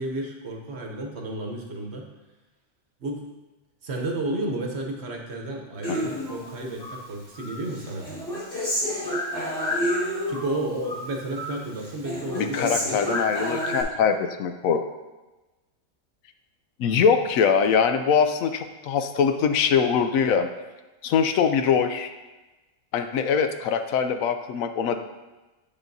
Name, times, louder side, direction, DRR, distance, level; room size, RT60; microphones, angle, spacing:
voice 1, 0.0-2.1 3.0-3.3 3.8-8.1 10.3-13.0, right 1 dB, 55° right, 1 dB, 1.1 m, -32 dB
Human voice, 5.8-7.0 7.4-10.6 10.8-11.6 11.8-13.8, equal, 40° left, 2.7 m, -29 dB
voice 2, 12.3-14.8 16.8-20.5 21.0-22.1 22.9-25.0, left 6 dB, 80° left, 8 dB, 1.0 m, -22 dB
8.1 x 7.0 x 2.7 m, 1.1 s
omnidirectional pair, 1.4 m